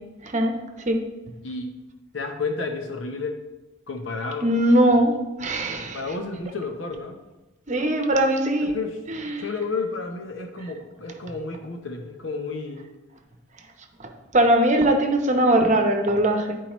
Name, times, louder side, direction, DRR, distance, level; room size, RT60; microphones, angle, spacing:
voice 1, 0.2-1.0 4.4-6.0 7.7-8.8 9.1-9.5 14.0-16.6, right 1 dB, 40° right, 4 dB, 0.8 m, -21 dB
voice 2, 2.1-3.3 3.9-4.5 5.9-7.2 8.6-9.0 9.4-12.9, left 3 dB, 75° left, 4 dB, 0.8 m, -31 dB
11.5 x 4.6 x 3.0 m, 1.1 s
head